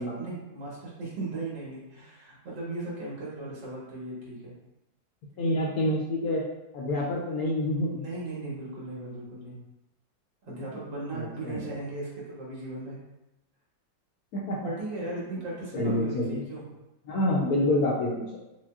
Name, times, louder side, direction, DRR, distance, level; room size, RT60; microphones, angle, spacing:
voice 1, 0.2-4.5 8.0-9.6 10.4-13.0 14.6-16.6, right 2 dB, 75° right, -6 dB, 2.0 m, -37 dB
voice 2, 5.4-6.4 6.7-8.0 11.1-11.6 14.3-14.6 15.1-15.2 15.7-16.3 17.1-18.4, left 1 dB, 70° left, -4 dB, 0.9 m, -27 dB
6.0 x 2.0 x 2.3 m, 0.96 s
omnidirectional pair, 2.0 m